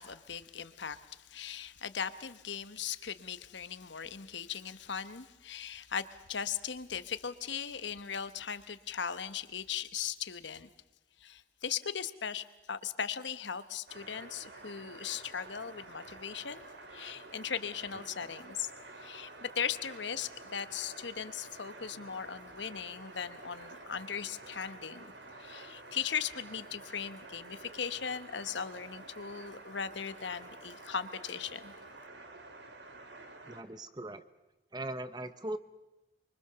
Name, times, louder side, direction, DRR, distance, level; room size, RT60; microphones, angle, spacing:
voice 1, 0.0-10.7 11.2-16.7 16.9-18.7 19.0-25.1 25.4-31.7, left 7 dB, 75° left, 12 dB, 1.1 m, -38 dB
sound 1, 13.9-33.6, right 2 dB, 65° right, 2.5 m, -50 dB
voice 2, 33.5-34.2 34.7-35.6, right 1 dB, 20° right, 12 dB, 0.9 m, -39 dB
24.5 x 24.0 x 6.9 m, 1.0 s
head